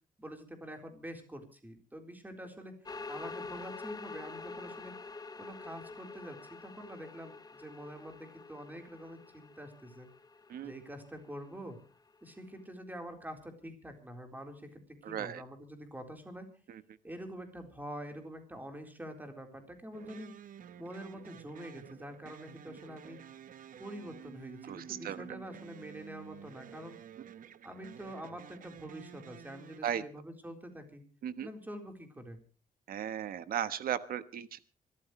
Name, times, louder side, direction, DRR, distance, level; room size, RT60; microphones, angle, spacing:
voice 1, 0.2-2.8 3.1-4.9 5.4-10.1 10.6-11.8 12.2-16.5 17.0-20.3 20.8-23.2 23.8-27.0 27.6-31.0 31.4-32.4, equal, 10° right, 4 dB, 4.0 m, -46 dB
sound 1, 2.9-12.3, left 3 dB, 25° left, 0.9 m, -47 dB
voice 2, 15.0-15.4 16.7-16.8 24.7-25.2 29.8-30.0 31.2-31.5 32.9-34.6, right 9 dB, 90° right, 13 dB, 1.2 m, -36 dB
sound 2, 19.9-29.8, right 8 dB, 70° right, 0.9 m, -51 dB
26.0 x 14.0 x 3.2 m, 0.37 s
cardioid pair, 105°, 15 cm